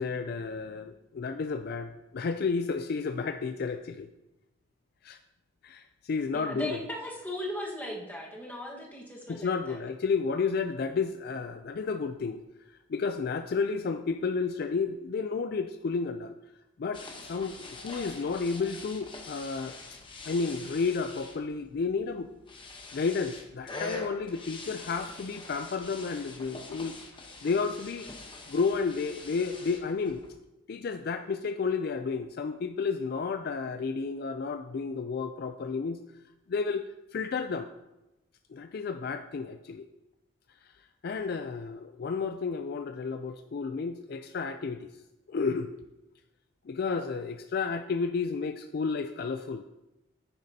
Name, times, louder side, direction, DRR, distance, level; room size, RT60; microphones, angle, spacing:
voice 1, 0.0-4.1 5.0-5.2 5.6-6.8 9.3-12.4 12.9-16.4 16.8-19.7 20.3-22.3 22.9-27.0 27.4-28.1 28.5-30.2 30.7-36.0 36.5-36.8 37.1-37.7 38.5-39.8 40.6-40.7 41.0-44.9 45.3-45.7 46.7-49.6, left 5 dB, 50° left, 9 dB, 0.3 m, -31 dB
voice 2, 6.3-9.8, left 1 dB, 10° left, -2 dB, 1.4 m, -37 dB
sound 1, 16.9-30.3, left 3 dB, 25° left, 0.9 m, -44 dB
9.9 x 9.1 x 2.8 m, 0.96 s
head